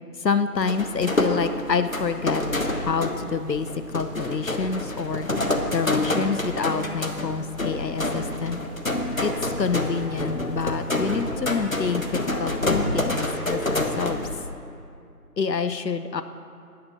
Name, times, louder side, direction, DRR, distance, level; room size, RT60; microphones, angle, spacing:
voice 1, 0.2-5.3 5.7-8.6 9.2-14.3 15.4-16.2, left 5 dB, 85° left, 11 dB, 0.8 m, -27 dB
sound 1, 0.6-14.5, left 1 dB, 55° left, 1.2 m, -27 dB
14.0 x 9.6 x 5.4 m, 2.4 s
figure-of-eight pair, 180°, 49 cm